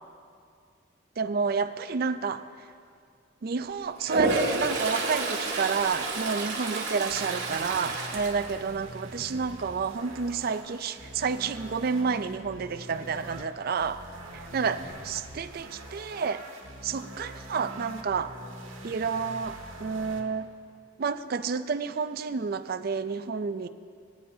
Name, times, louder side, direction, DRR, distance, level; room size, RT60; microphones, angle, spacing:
voice 1, 1.2-2.4 3.4-14.0 14.3-16.4 16.8-18.3 18.8-20.5 21.0-23.7, right 5 dB, 50° right, 10 dB, 0.4 m, -30 dB
Toilet flush, 4.0-9.2 9.6-10.0 14.4-14.5 14.8-15.5, right 3 dB, 65° right, 1.8 m, -30 dB
sound 1, 7.1-13.4 13.8-20.2, right 1 dB, 90° right, 1.4 m, -44 dB
22.0 x 9.4 x 2.7 m, 2.3 s
head